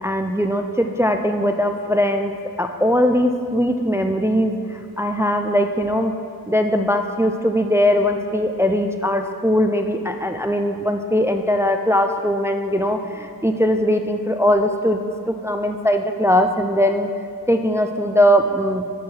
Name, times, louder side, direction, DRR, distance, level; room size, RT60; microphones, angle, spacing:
voice 1, 0.0-6.1 6.5-17.1 17.5-18.8, equal, 10° right, 6 dB, 0.3 m, -20 dB
7.3 x 4.6 x 6.1 m, 2.3 s
wide cardioid pair, 55°, 36 cm